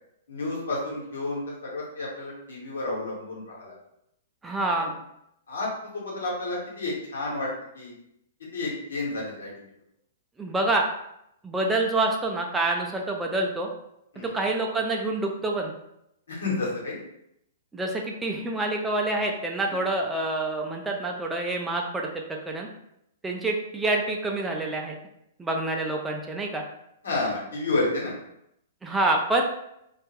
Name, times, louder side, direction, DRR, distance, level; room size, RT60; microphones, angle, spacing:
voice 1, 0.3-3.7 4.8-4.9 5.5-7.5 7.7-7.9 8.5-9.5 14.1-14.3 16.3-17.0 27.0-28.1, left 2 dB, 80° left, -4 dB, 1.1 m, -30 dB
voice 2, 4.4-4.9 10.4-10.9 11.4-13.7 14.3-15.7 17.7-22.1 22.5-22.7 23.2-25.0 25.4-26.6 28.8-29.4, right 2 dB, 10° right, 0 dB, 0.4 m, -27 dB
2.4 x 2.1 x 3.1 m, 0.78 s
hypercardioid pair, 120°, 0 cm